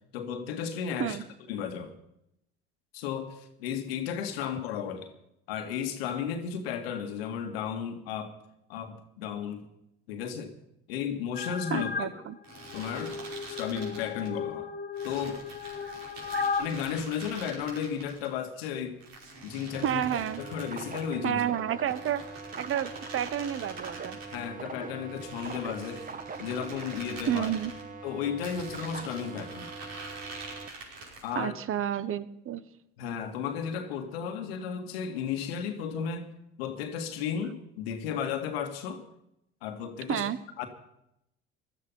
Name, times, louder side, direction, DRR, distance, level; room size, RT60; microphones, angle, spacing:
voice 1, 0.1-1.2 1.5-1.9 2.9-5.1 5.5-8.3 8.7-9.6 10.1-10.5 10.9-12.1 12.7-13.2 13.5-14.7 15.0-15.4 16.6-19.0 19.4-20.0 20.4-21.5 24.3-26.0 26.4-27.5 28.0-29.7 31.2-31.6 33.0-36.3 36.6-39.1 39.6-40.2 40.6-40.7, left 7 dB, 80° left, 7 dB, 1.8 m, -34 dB
sound 1, 11.4-12.1 12.6-16.6, left 5 dB, 30° left, 1.4 m, -35 dB
voice 2, 11.7-12.4 15.8-15.9 16.3-16.5 19.8-20.4 21.2-22.2 22.6-24.2 27.3-27.7 31.3-32.6 40.1-40.4, right 10 dB, 45° right, 16 dB, 1.0 m, -30 dB
sound 2, 12.4-14.3 15.0-18.3 19.0-21.1 21.7-24.4 25.1-27.8 28.4-31.4, right 3 dB, 60° right, 5.6 m, -45 dB
sound 3, 19.7-30.7, right 4 dB, 25° right, 1.5 m, -42 dB
17.0 x 12.5 x 5.5 m, 0.80 s
hypercardioid pair, 65°, 30 cm